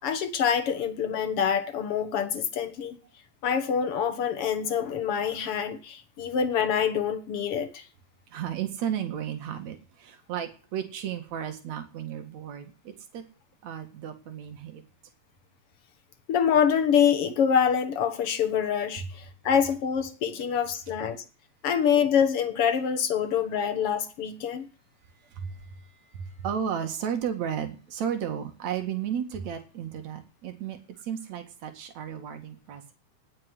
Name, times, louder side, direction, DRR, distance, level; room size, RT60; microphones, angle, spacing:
voice 1, 0.0-3.0 3.4-7.8 16.3-21.2 21.6-24.7, left 7 dB, 55° left, 1.9 m, -25 dB
voice 2, 8.3-13.2 13.6-14.8 25.3-25.7 26.1-30.8 31.0-32.9, right 8 dB, 60° right, 3.1 m, -33 dB
18.5 x 6.9 x 7.9 m
omnidirectional pair, 3.7 m